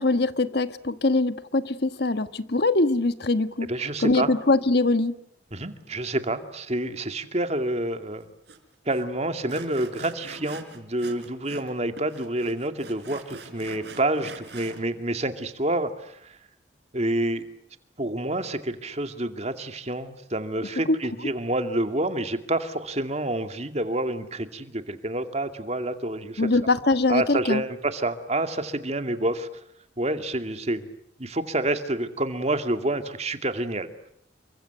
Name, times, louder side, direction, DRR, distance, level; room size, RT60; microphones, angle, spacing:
voice 1, 0.0-3.7 4.0-5.1 20.9-21.0 26.4-27.6, left 2 dB, 55° left, 11 dB, 1.4 m, -22 dB
voice 2, 3.7-4.3 5.5-8.3 8.9-16.4 16.9-17.4 18.0-26.5 27.1-29.5 30.0-30.9 31.2-33.9, right 1 dB, 35° right, 8 dB, 2.3 m, -28 dB
Sawing, 8.5-8.6 8.9-9.0 9.5-11.7 12.0-14.8, right 3 dB, 60° right, 4.8 m, -43 dB
29.0 x 24.5 x 7.9 m, 0.72 s
head